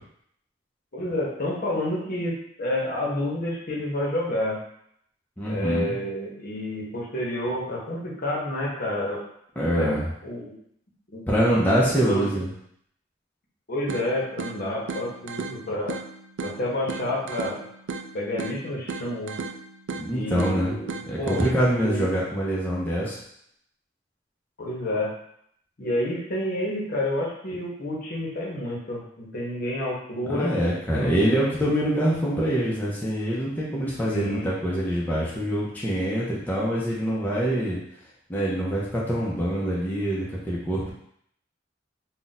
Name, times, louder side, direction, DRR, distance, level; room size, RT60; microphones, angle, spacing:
voice 1, 0.9-4.6 5.5-9.2 9.7-9.9 10.2-10.5 11.1-11.2 12.0-12.3 13.7-16.0 16.4-17.6 18.1-19.4 20.1-20.9 21.2-21.5 21.8-22.1 24.6-25.1 25.8-30.6 31.0-31.4 34.1-34.5, left 1 dB, 50° left, -3 dB, 0.8 m, -29 dB
voice 2, 5.4-6.0 9.6-10.1 11.3-12.5 20.0-20.8 21.1-23.2 30.3-37.8 38.3-40.9, equal, 10° left, -6 dB, 0.5 m, -25 dB
sound 1, 13.9-21.9, right 4 dB, 80° right, 0.3 m, -36 dB
2.5 x 2.1 x 3.9 m, 0.70 s
head